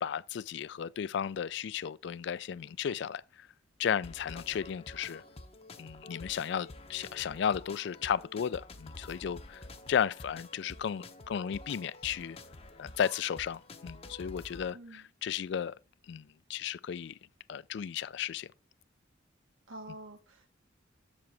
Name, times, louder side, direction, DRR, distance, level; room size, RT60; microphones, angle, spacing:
voice 1, 0.0-3.5 3.8-5.2 5.8-9.6 9.9-12.4 12.8-15.8 16.1-17.2 17.5-18.5, left 8 dB, 60° left, 0.3 m, -34 dB
sound 1, 4.0-14.7, left 2 dB, 30° left, 0.7 m, -49 dB
voice 2, 14.7-15.0 19.7-20.5, right 1 dB, 85° right, 1.7 m, -47 dB
7.6 x 7.2 x 3.4 m
head